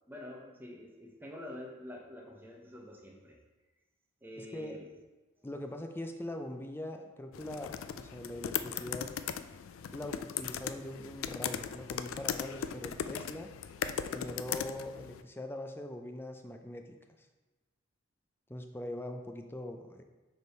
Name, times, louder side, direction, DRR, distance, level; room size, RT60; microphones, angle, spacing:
voice 1, 0.1-3.4 4.2-4.9, left 1 dB, 10° right, 0 dB, 0.8 m, -47 dB
voice 2, 4.4-4.8 5.4-9.1 9.9-13.5 14.1-16.8 18.5-20.0, left 1 dB, 10° left, 5 dB, 0.4 m, -42 dB
sound 1, 7.3-15.2, left 8 dB, 85° left, 0.3 m, -38 dB
6.7 x 3.5 x 4.6 m, 1.2 s
head